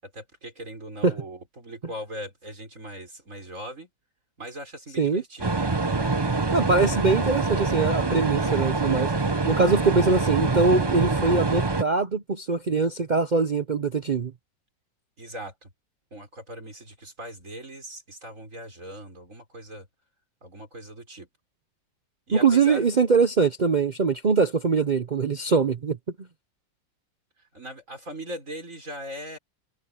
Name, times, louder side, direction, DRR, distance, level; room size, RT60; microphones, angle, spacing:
voice 1, 0.0-3.9 4.4-5.6 15.2-15.7 16.1-19.9 20.4-21.3 22.3-22.9 27.5-29.4, equal, 40° right, 5.9 m, -39 dB
sound 1, 5.4-11.8, right 3 dB, 20° right, 0.6 m, -25 dB
voice 2, 6.5-9.1 9.4-14.3 22.3-26.0, right 4 dB, 80° right, 0.4 m, -22 dB
omnidirectional pair, 2.0 m